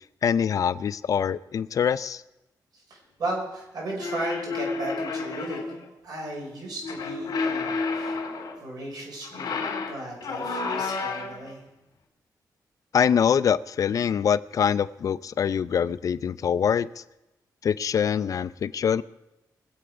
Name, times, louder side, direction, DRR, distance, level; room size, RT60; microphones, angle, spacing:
voice 1, 0.2-2.2 12.9-17.0 17.6-19.0, left 7 dB, 55° left, 16 dB, 0.4 m, -24 dB
voice 2, 2.7-5.7 6.0-8.2 8.6-11.6, right 2 dB, 70° right, -1 dB, 5.4 m, -36 dB
sound 1, 4.0-5.8 6.8-8.6 9.2-11.5, left 4 dB, 70° left, 2.8 m, -30 dB
23.0 x 7.9 x 4.9 m, 0.95 s
wide cardioid pair, 140°, 7 cm